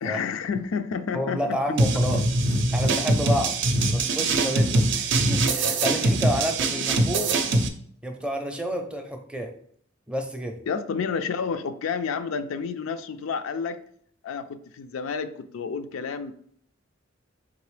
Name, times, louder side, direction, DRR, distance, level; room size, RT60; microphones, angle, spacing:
voice 1, 0.0-1.8 10.7-13.8 14.2-16.3, left 6 dB, 85° left, 10 dB, 0.4 m, -30 dB
voice 2, 1.1-2.2 2.7-3.5 3.9-7.4 8.0-9.5 10.1-10.6, equal, 5° right, 4 dB, 0.5 m, -29 dB
sound 1, 1.8-7.7, right 2 dB, 65° right, 0.5 m, -23 dB
3.8 x 3.6 x 3.2 m, 0.62 s
head